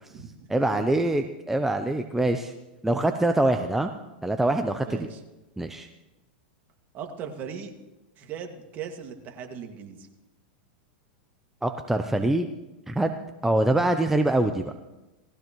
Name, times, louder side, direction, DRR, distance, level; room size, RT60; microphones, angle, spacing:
voice 1, 0.5-2.5 2.8-3.9 4.2-5.1 5.6-5.9 11.6-12.5 12.9-13.2 13.4-14.7, right 1 dB, 5° right, 6 dB, 0.6 m, -24 dB
voice 2, 4.8-5.2 6.9-7.7 8.2-10.1, right 7 dB, 35° right, 3 dB, 2.1 m, -38 dB
19.5 x 14.5 x 3.1 m, 1.0 s
hypercardioid pair, 125°, 5 cm